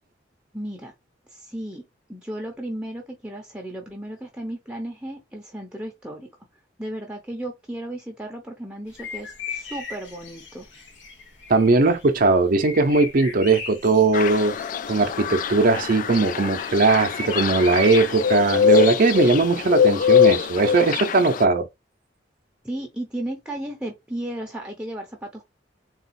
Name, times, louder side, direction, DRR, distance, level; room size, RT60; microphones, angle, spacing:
voice 1, 0.5-0.9 1.3-1.8 2.1-6.3 6.8-10.7 22.6-25.4, right 1 dB, 5° right, 0.7 m, -34 dB
sound 1, 8.9-20.6, left 2 dB, 75° left, 1.1 m, -38 dB
voice 2, 11.5-14.5 14.9-21.6, right 3 dB, 50° right, 0.6 m, -19 dB
sound 2, 14.1-21.5, left 7 dB, 45° left, 0.3 m, -23 dB
4.0 x 2.4 x 4.1 m
head